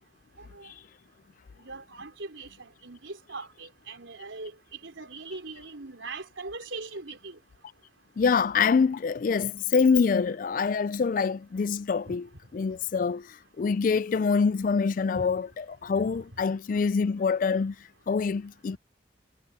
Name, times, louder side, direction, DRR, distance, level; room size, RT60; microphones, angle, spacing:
voice 1, 0.4-0.7 1.6-4.5 4.8-7.4 12.1-12.2 15.2-15.3 16.0-16.1, right 3 dB, 90° right, 4.3 m, -41 dB
voice 2, 8.2-12.3 12.5-17.8 18.1-18.8, left 5 dB, 45° left, 0.3 m, -25 dB
head